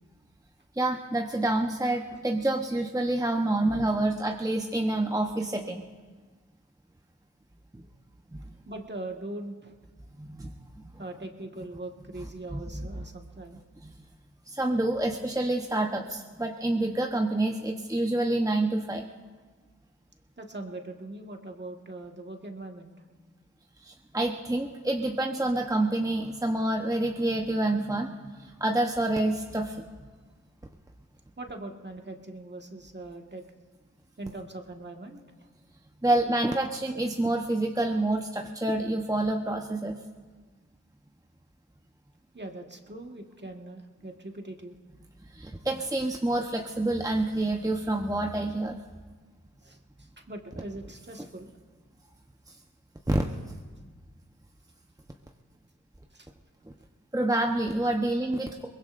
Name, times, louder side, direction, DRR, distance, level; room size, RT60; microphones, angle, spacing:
voice 1, 0.8-5.8 7.7-7.8 8.3-8.4 10.2-10.9 12.5-12.9 13.8-13.9 14.5-19.0 23.8-28.1 28.4-29.8 36.0-40.0 45.3-48.8 53.1-53.4 57.1-58.7, right 1 dB, 10° right, 2 dB, 0.9 m, -28 dB
voice 2, 8.6-9.8 11.0-13.6 20.4-23.0 31.4-33.4 34.2-35.2 42.3-44.7 49.6-51.5 56.1-56.3, right 2 dB, 35° right, 3 dB, 1.7 m, -41 dB
23.0 x 20.5 x 2.6 m, 1.4 s
cardioid pair, 45°, 30 cm